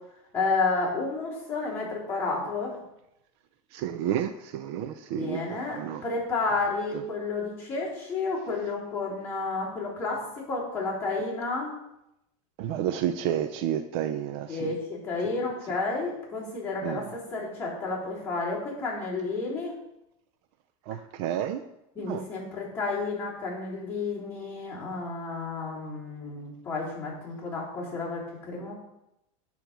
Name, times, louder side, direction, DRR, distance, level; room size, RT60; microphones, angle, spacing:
voice 1, 0.3-2.8 5.1-10.2 10.5-11.8 14.5-17.1 17.3-19.7 22.0-28.7, left 3 dB, 15° left, -8 dB, 3.6 m, -31 dB
voice 2, 3.7-6.0 12.6-14.7 16.8-17.1 20.9-21.6 22.0-22.2, right 10 dB, 50° right, 10 dB, 0.5 m, -31 dB
9.2 x 4.5 x 6.7 m, 0.87 s
supercardioid pair, 160°, 18 cm